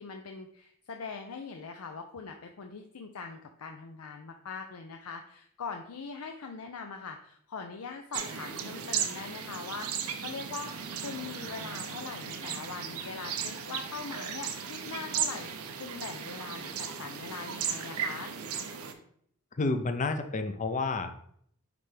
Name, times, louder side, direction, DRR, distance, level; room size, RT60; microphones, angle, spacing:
voice 1, 0.0-10.7 11.0-18.3, left 5 dB, 80° left, 4 dB, 0.5 m, -42 dB
sound 1, 8.1-18.9, right 7 dB, 90° right, 0.7 m, -36 dB
voice 2, 19.6-21.3, left 3 dB, 35° left, 8 dB, 0.6 m, -30 dB
9.6 x 3.4 x 3.3 m, 0.66 s
head